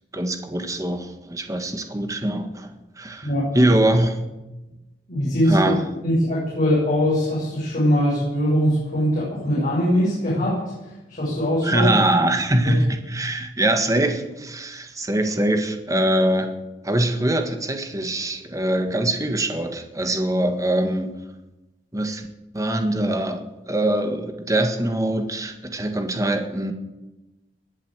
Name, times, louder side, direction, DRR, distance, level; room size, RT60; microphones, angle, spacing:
voice 1, 0.1-2.7 3.0-3.3 3.5-4.2 5.5-5.8 11.6-16.5 16.8-21.1 21.9-22.3 22.5-26.7, right 1 dB, 20° right, 6 dB, 1.6 m, -23 dB
voice 2, 5.1-5.8 6.0-10.6 11.1-11.9, equal, 45° left, -7 dB, 7.3 m, -21 dB
20.5 x 8.3 x 8.2 m, 1.0 s
head